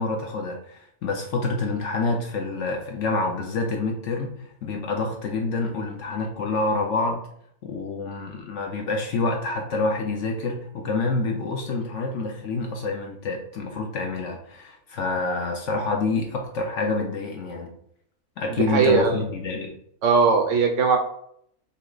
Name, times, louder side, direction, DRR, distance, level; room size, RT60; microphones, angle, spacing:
voice 1, 0.0-4.3 4.6-7.2 7.6-17.7 18.4-19.7, left 3 dB, 65° left, 2 dB, 0.8 m, -27 dB
voice 2, 18.5-19.2 20.0-21.0, right 5 dB, 70° right, 4 dB, 0.8 m, -20 dB
5.6 x 2.1 x 3.8 m, 0.70 s
omnidirectional pair, 1.6 m